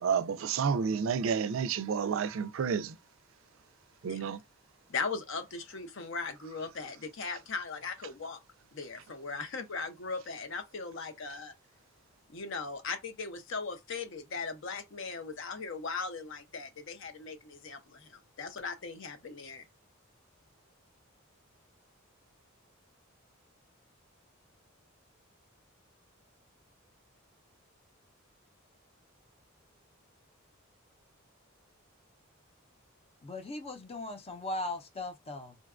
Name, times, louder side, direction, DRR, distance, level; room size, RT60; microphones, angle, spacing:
voice 1, 0.0-3.0 4.0-4.4, right 6 dB, 65° right, 0.4 m, -30 dB
voice 2, 4.9-8.4 8.7-11.5 12.3-19.6, left 4 dB, 65° left, 0.6 m, -38 dB
voice 3, 33.2-35.6, left 2 dB, 30° left, 0.5 m, -38 dB
3.7 x 2.2 x 2.4 m
head